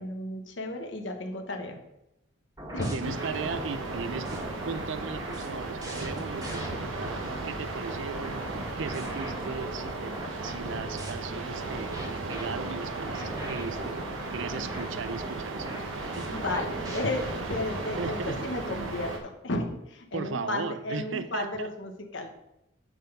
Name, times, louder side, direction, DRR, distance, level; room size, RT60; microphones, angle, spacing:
voice 1, 0.0-1.8 2.7-3.1 16.3-19.1 19.4-22.3, left 2 dB, 65° left, 4 dB, 1.1 m, -33 dB
sound 1, 2.6-7.4 7.9-11.1 11.7-18.4, right 1 dB, 20° right, 1.6 m, -40 dB
voice 2, 2.9-7.2 7.4-8.5 8.8-10.2 10.4-14.0 14.3-15.7 16.1-16.3 18.0-18.4 20.1-21.7, right 5 dB, 70° right, 13 dB, 0.5 m, -37 dB
sound 2, 3.0-19.2, right 3 dB, 85° right, 1.2 m, -35 dB
9.2 x 4.0 x 5.4 m, 0.86 s
head